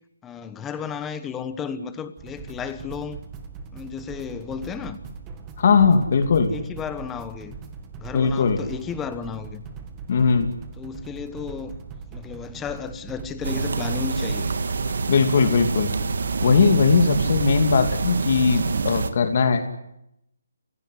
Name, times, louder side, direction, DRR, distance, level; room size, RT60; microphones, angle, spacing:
voice 1, 0.2-3.2 3.7-5.0 6.5-7.6 8.0-9.6 10.8-11.8 12.1-14.5, left 6 dB, 10° left, 1.2 m, -33 dB
sound 1, 2.2-14.1, right 5 dB, 15° right, 2.0 m, -40 dB
voice 2, 5.6-6.5 8.1-8.6 10.1-10.5 15.1-15.9 16.4-19.7, left 5 dB, 45° left, 2.6 m, -19 dB
sound 2, 13.4-19.1, right 4 dB, 65° right, 2.2 m, -26 dB
28.0 x 17.0 x 9.8 m
hypercardioid pair, 170°, 0 cm